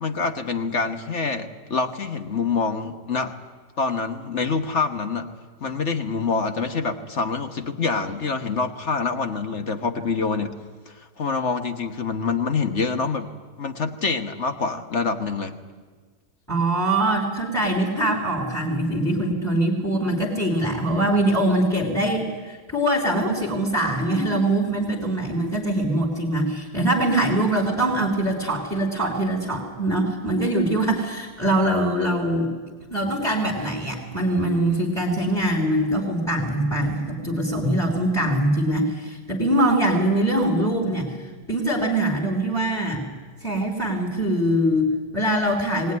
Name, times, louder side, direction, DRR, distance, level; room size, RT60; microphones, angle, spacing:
voice 1, 0.0-3.3 3.8-5.3 5.6-10.6 10.9-13.3 13.6-15.6, left 4 dB, 45° left, 7 dB, 1.4 m, -26 dB
voice 2, 16.5-32.5 32.9-43.0 43.4-45.9, right 1 dB, ahead, -2 dB, 3.0 m, -23 dB
21.5 x 19.0 x 9.5 m, 1.4 s
omnidirectional pair, 1.8 m